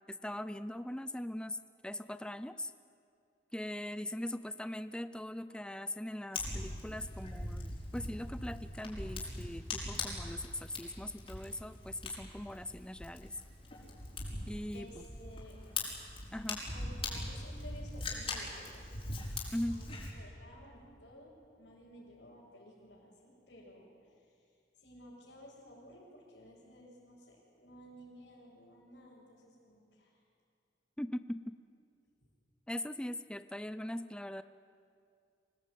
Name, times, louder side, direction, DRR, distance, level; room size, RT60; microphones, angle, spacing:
voice 1, 0.1-1.6 1.8-2.7 3.5-13.3 14.5-15.0 16.3-16.6 19.5-19.8 31.0-31.6 32.7-34.4, left 1 dB, 5° left, 12 dB, 0.5 m, -40 dB
Fire, 6.3-20.1, left 2 dB, 35° left, 5.4 m, -41 dB
voice 2, 14.7-15.6 16.7-18.9 19.7-19.9 20.1-24.1 24.8-30.2, equal, 80° left, -8 dB, 5.9 m, -55 dB
25.0 x 18.5 x 9.3 m, 2.4 s
head